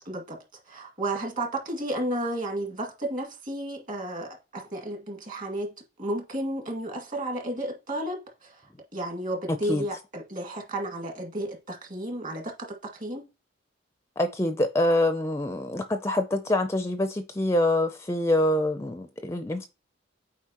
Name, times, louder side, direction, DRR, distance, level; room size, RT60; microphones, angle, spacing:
voice 1, 0.1-0.4 0.7-13.3, right 1 dB, 40° right, 2.0 m, -33 dB
voice 2, 14.2-19.7, left 1 dB, 15° left, 0.4 m, -25 dB
8.2 x 4.7 x 2.9 m
head